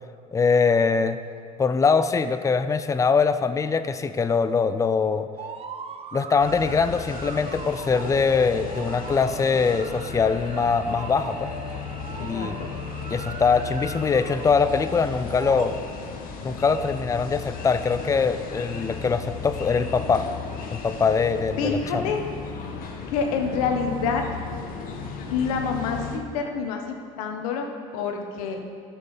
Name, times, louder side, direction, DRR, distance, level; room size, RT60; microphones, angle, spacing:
voice 1, 0.3-1.2 1.6-5.3 6.1-11.5 12.2-12.6 13.1-15.8 16.4-20.3 20.7-22.0, left 5 dB, 15° left, 11 dB, 0.5 m, -22 dB
sound 1, 5.4-15.7, right 3 dB, 30° right, 0.8 m, -39 dB
sound 2, 6.4-26.2, left 5 dB, 50° left, 1.6 m, -35 dB
voice 2, 12.2-12.7 21.6-22.2 23.1-24.3 25.3-26.8 27.2-27.7 27.9-28.6, left 5 dB, 80° left, 3 dB, 1.3 m, -27 dB
12.5 x 6.7 x 5.6 m, 2.3 s
hypercardioid pair, 85°, 18 cm